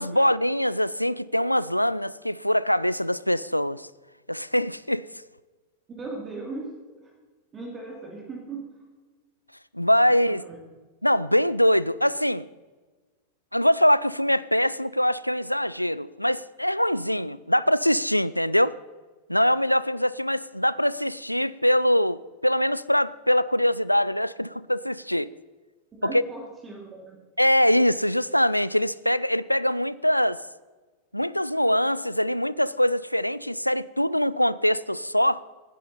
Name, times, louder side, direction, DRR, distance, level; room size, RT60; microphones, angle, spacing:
voice 1, 0.0-3.9 4.3-5.1 9.7-10.4 11.0-12.5 13.5-18.8 19.3-25.3 26.0-26.2 27.4-30.4 31.1-35.4, equal, 90° left, 0.4 m, -23 dB
voice 2, 6.0-6.8 7.0-7.1 7.5-8.7 10.1-10.6 26.0-27.2, right 3 dB, 20° right, 2.8 m, -38 dB
18.0 x 10.5 x 4.2 m
figure-of-eight pair, 90°, 0 cm